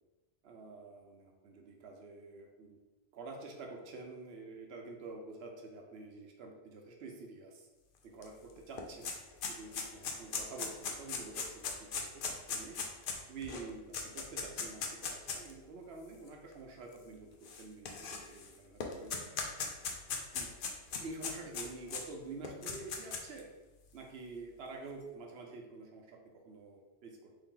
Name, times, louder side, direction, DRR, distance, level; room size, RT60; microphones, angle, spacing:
voice 1, 0.4-2.8 3.1-7.7 8.0-9.1 9.5-12.9 13.3-19.3 19.6-19.7 20.3-20.5 21.0-23.5 23.9-27.3, right 3 dB, 70° right, 2 dB, 0.8 m, -48 dB
sound 1, 8.2-8.3 8.6-15.5 16.3-16.4 17.4-18.5 18.8-22.0 22.4-23.4, left 5 dB, 60° left, 0.6 m, -38 dB
3.3 x 2.7 x 3.7 m, 1.1 s
omnidirectional pair, 1.2 m